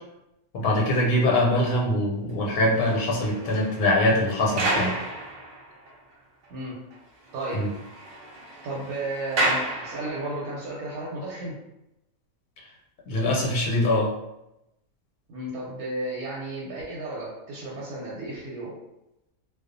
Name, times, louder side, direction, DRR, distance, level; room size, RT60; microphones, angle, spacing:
voice 1, 0.5-4.9 7.5-7.7 12.6-12.7 13.1-14.1, left 1 dB, 85° left, -3 dB, 1.1 m, -23 dB
sound 1, 2.4-6.1 6.4-6.5 6.9-7.0 7.3-10.5 11.2-11.4, right 1 dB, 70° right, 0.5 m, -32 dB
voice 2, 6.5-6.8 7.3-7.6 8.6-11.6 15.3-18.8, right 2 dB, 90° right, -5 dB, 1.1 m, -33 dB
2.3 x 2.3 x 2.5 m, 0.91 s
omnidirectional pair, 1.6 m